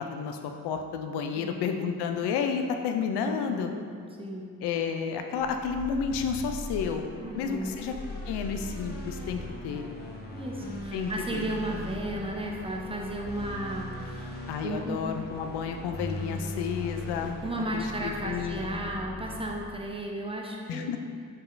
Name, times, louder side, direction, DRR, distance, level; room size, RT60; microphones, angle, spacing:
voice 1, 0.0-3.7 4.6-7.1 7.4-7.9 8.3-9.8 10.9-11.5 14.5-17.4 17.7-18.7 20.7-21.0, left 6 dB, 60° left, 5 dB, 0.5 m, -31 dB
voice 2, 3.2-3.9 4.2-4.5 7.2-7.8 10.3-15.0 17.4-20.9, right 1 dB, 10° right, -1 dB, 0.6 m, -34 dB
sound 1, 5.4-19.9, left 1 dB, 20° left, 0.8 m, -39 dB
4.2 x 3.5 x 2.5 m, 2.2 s
hypercardioid pair, 45°, 46 cm